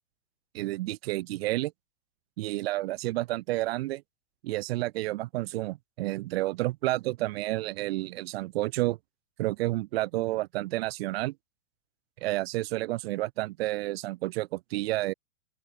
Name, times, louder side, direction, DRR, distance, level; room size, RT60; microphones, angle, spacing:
voice 1, 0.5-1.7 2.4-4.0 4.4-9.0 9.4-11.3 12.2-15.1, right 18 dB, 45° right, 0.6 m, -30 dB
open air
hypercardioid pair, 150°, 43 cm